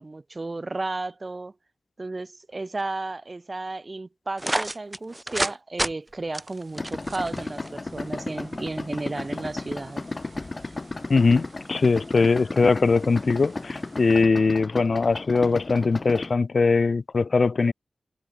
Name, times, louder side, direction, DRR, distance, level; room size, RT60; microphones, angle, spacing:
voice 1, 0.0-1.5 2.0-10.0, right 2 dB, 40° right, 1.0 m, -33 dB
sound 1, 4.4-5.5 5.8-5.9 6.3-7.7, right 1 dB, 20° right, 0.6 m, -28 dB
sound 2, 6.3-14.2, right 4 dB, 65° right, 2.9 m, -56 dB
Idling, 6.8-16.3, left 2 dB, 40° left, 1.1 m, -34 dB
voice 2, 11.1-17.7, left 4 dB, 65° left, 0.4 m, -21 dB
cardioid pair, 50°, 0 cm